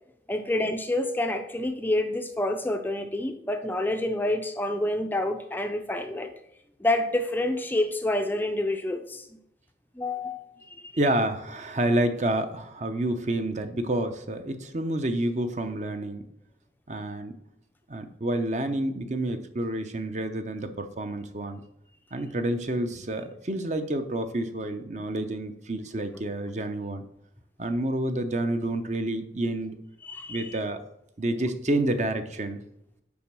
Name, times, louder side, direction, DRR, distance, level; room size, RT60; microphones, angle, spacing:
voice 1, 0.3-6.3 6.8-9.3 10.0-10.9 30.0-30.6, left 1 dB, 10° left, 6 dB, 0.4 m, -28 dB
voice 2, 11.0-16.2 16.9-17.3 17.9-21.6 22.1-27.0 27.6-29.8 30.3-30.8 31.2-32.6, right 1 dB, 40° right, 8 dB, 0.7 m, -29 dB
7.0 x 5.3 x 6.1 m, 0.80 s
head